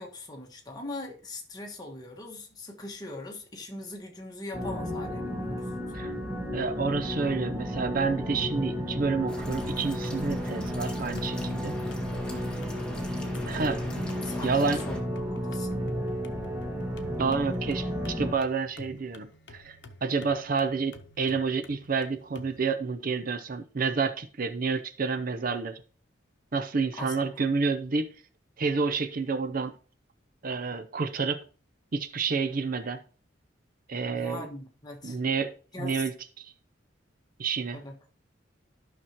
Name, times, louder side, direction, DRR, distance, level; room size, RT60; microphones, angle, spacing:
voice 1, 0.0-5.7 14.2-15.0 15.3-15.7 26.9-27.4 34.1-35.2 35.7-36.0 37.7-37.9, left 2 dB, 20° left, 1.5 m, -41 dB
sound 1, 4.5-18.3, equal, 15° right, 1.4 m, -33 dB
voice 2, 6.5-11.8 13.5-13.8 14.4-14.8 17.2-25.8 26.5-28.1 28.6-29.7 30.4-31.4 31.9-33.0 33.9-34.5 35.0-36.1 36.4-36.5 37.4-37.8, right 4 dB, 45° right, 0.5 m, -29 dB
sound 2, 9.3-15.0, equal, 5° left, 1.7 m, -41 dB
sound 3, 11.1-22.6, left 2 dB, 65° left, 0.9 m, -51 dB
12.5 x 6.1 x 2.9 m
head